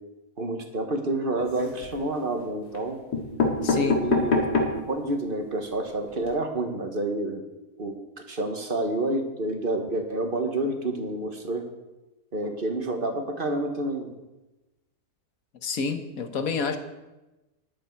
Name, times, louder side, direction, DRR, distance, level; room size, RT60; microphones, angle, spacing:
voice 1, 0.4-3.0 3.8-4.4 4.9-7.4 7.8-8.0 8.3-11.6 12.3-14.1, right 2 dB, 35° right, 4 dB, 1.5 m, -28 dB
sound 1, 1.4-2.0 2.7-2.8 3.1-4.9 5.4-5.5 5.7-5.8 6.1-6.3, left 3 dB, 80° left, 2.5 m, -25 dB
voice 2, 3.6-4.0 15.6-16.8, left 4 dB, 65° left, 7 dB, 1.6 m, -28 dB
13.0 x 11.0 x 4.6 m, 1.0 s
omnidirectional pair, 1.7 m